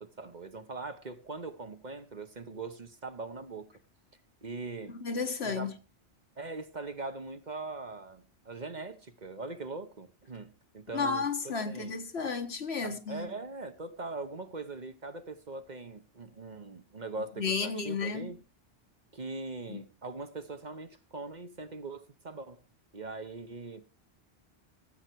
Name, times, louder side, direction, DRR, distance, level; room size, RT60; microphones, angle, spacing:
voice 1, 0.0-3.7 4.4-5.0 5.4-5.7 6.4-12.0 12.8-18.4 19.1-22.6 22.9-23.8, right 3 dB, 45° right, 1.1 m, -41 dB
voice 2, 4.9-5.8 10.9-13.3 17.4-18.3 19.7-19.8, left 5 dB, 75° left, 1.7 m, -33 dB
15.5 x 8.1 x 4.5 m
omnidirectional pair, 1.1 m